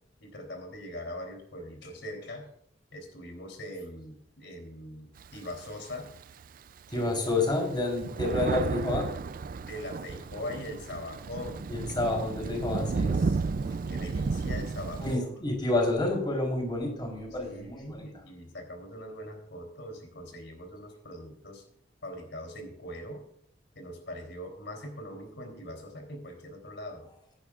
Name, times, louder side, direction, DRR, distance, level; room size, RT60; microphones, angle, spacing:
voice 1, 0.2-2.5 2.9-6.1 6.9-7.2 9.6-11.7 13.1-15.3 17.4-21.6 22.0-23.2 23.7-27.1, left 1 dB, 85° left, 3 dB, 3.4 m, -41 dB
Thunder, 5.2-6.4 7.0-7.1 7.3-15.2, right 4 dB, 50° right, 0.4 m, -32 dB
voice 2, 6.9-9.1 11.7-13.1 15.0-17.9, left 2 dB, 25° left, 1 dB, 3.8 m, -29 dB
16.5 x 10.5 x 2.4 m, 0.68 s
head